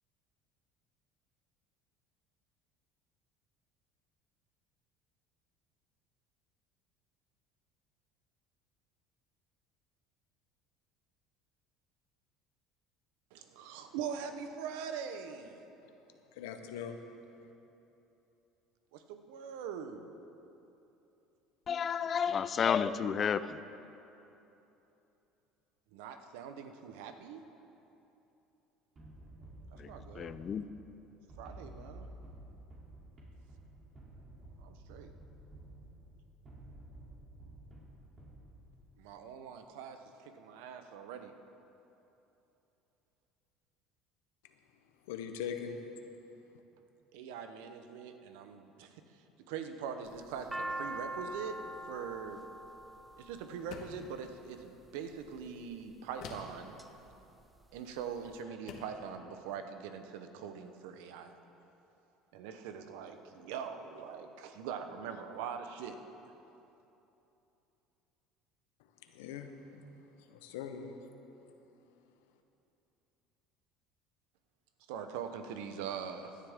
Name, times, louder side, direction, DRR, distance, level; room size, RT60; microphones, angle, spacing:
voice 1, 13.3-15.6 18.9-20.1 25.9-27.4 29.7-30.3 31.4-32.1 34.6-35.1 39.0-41.3 47.1-48.9 49.5-51.6 51.9-52.4 53.2-56.7 57.7-61.3 62.3-66.0 74.9-76.4, right 7 dB, 80° right, 8 dB, 0.9 m, -42 dB
voice 2, 16.3-17.0 45.1-45.8 69.0-69.8 70.3-71.0, left 8 dB, 90° left, 7 dB, 0.9 m, -41 dB
voice 3, 21.7-23.6 29.8-30.7, left 7 dB, 40° left, 14 dB, 0.4 m, -32 dB
sound 1, 29.0-38.9, right 1 dB, 35° right, 3.0 m, -52 dB
sound 2, 50.1-54.3 55.1-55.6 56.2-56.9 57.2-57.3 57.5-58.3, right 1 dB, 10° right, 0.7 m, -42 dB
sound 3, 53.7-54.1 56.2-56.7 58.0-58.1 58.7-59.0, left 5 dB, 65° left, 1.4 m, -47 dB
16.5 x 10.5 x 3.7 m, 3.0 s
supercardioid pair, 105°, 0 cm